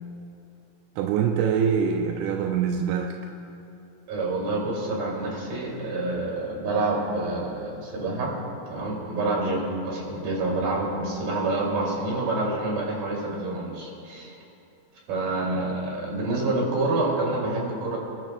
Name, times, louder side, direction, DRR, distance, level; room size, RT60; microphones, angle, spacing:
voice 1, 1.0-3.2, right 7 dB, 85° right, 2 dB, 2.8 m, -24 dB
voice 2, 4.1-8.3 8.7-14.3 15.1-18.0, right 2 dB, 60° right, -3 dB, 4.3 m, -27 dB
28.0 x 12.5 x 2.2 m, 2.9 s
omnidirectional pair, 5.3 m